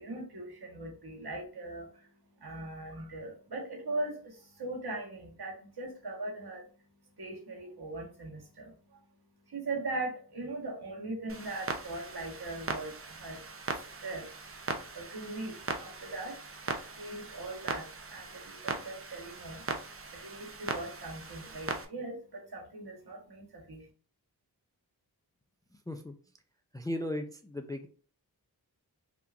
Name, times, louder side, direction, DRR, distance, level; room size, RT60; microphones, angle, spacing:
voice 1, 0.0-14.3 14.7-19.7 20.1-23.9, right 2 dB, 65° right, -1 dB, 1.3 m, -40 dB
Clock, 11.3-21.9, right 4 dB, 35° right, 0.6 m, -40 dB
voice 2, 26.7-27.9, left 1 dB, 10° left, 6 dB, 0.4 m, -36 dB
3.4 x 2.8 x 2.4 m, 0.41 s
cardioid pair, 50°, 40 cm